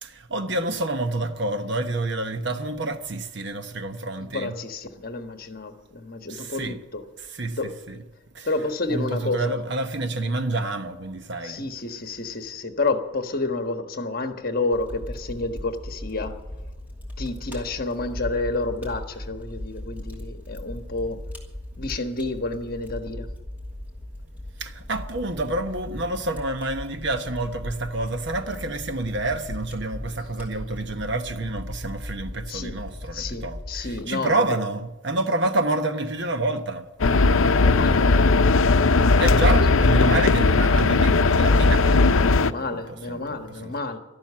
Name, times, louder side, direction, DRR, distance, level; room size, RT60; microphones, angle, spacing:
voice 1, 0.0-4.5 6.3-6.8 7.3-8.0 8.3-8.5 8.9-11.6 24.6-36.9 39.2-42.8 43.1-43.7, right 2 dB, 55° right, 1.1 m, -28 dB
voice 2, 4.2-7.0 7.5-7.7 8.4-9.4 11.4-16.4 17.2-21.2 21.8-23.3 32.5-32.8 33.1-34.4 37.4-38.1 39.4-39.7 42.1-44.0, left 3 dB, 45° left, 1.4 m, -30 dB
Fire, 14.7-34.0, left 1 dB, 10° right, 2.6 m, -38 dB
sound 1, 37.0-42.5, left 3 dB, 80° left, 0.6 m, -18 dB
13.0 x 12.0 x 8.6 m
head